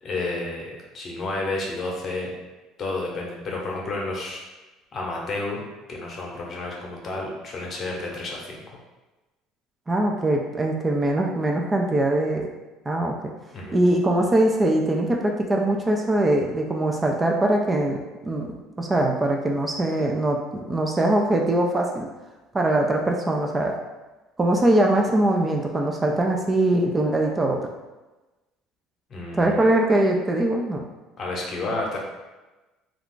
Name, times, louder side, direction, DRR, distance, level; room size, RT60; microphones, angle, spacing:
voice 1, 0.0-2.3 2.8-4.4 4.9-8.6 13.5-13.8 29.1-29.7 31.2-32.0, left 2 dB, 45° left, -2 dB, 0.8 m, -31 dB
voice 2, 9.9-12.5 12.9-13.3 13.7-18.5 18.8-20.4 20.7-22.1 22.5-23.7 24.4-27.6 29.4-30.8, right 1 dB, 20° right, 1 dB, 0.4 m, -22 dB
2.3 x 2.3 x 3.7 m, 1.1 s
supercardioid pair, 90°, 0 cm